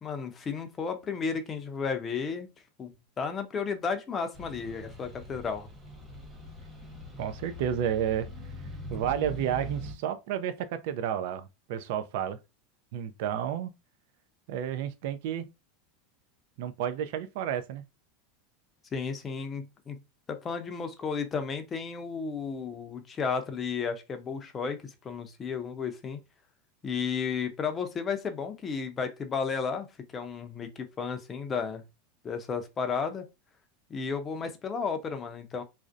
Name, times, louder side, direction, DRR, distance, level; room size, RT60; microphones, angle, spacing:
voice 1, 0.0-2.5 2.8-2.9 3.2-5.7 18.9-20.0 20.3-26.2 26.8-29.9 30.1-31.8 32.2-33.2 33.9-35.6, left 5 dB, 25° left, 0.5 m, -33 dB
sound 1, 4.3-9.9, left 1 dB, 10° right, 1.0 m, -42 dB
voice 2, 7.2-8.3 8.9-12.4 12.9-13.7 14.5-15.5 16.6-17.8, right 9 dB, 65° right, 0.3 m, -31 dB
2.5 x 2.0 x 2.4 m
supercardioid pair, 125°, 0 cm